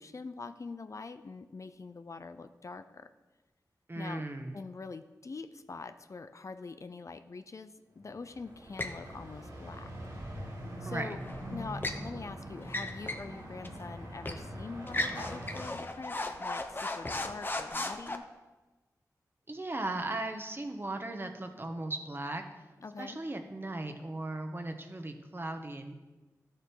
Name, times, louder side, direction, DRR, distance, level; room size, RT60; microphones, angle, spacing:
voice 1, 0.0-3.1 4.0-4.2 4.5-9.9 10.8-11.2 11.5-18.3 22.8-23.2, left 4 dB, 50° left, 10 dB, 0.5 m, -44 dB
voice 2, 3.9-4.6 10.8-11.1 19.5-22.4 23.0-25.9, right 2 dB, 35° right, 5 dB, 1.3 m, -37 dB
sound 1, 8.0-15.7, equal, 80° right, 2.8 m, -43 dB
sound 2, 8.8-9.0 11.2-12.0 12.6-13.3 13.6-13.8 14.2-14.5 14.9-18.2, left 2 dB, 30° left, 0.9 m, -36 dB
11.5 x 6.8 x 4.6 m, 1.2 s
cardioid pair, 50°, 7 cm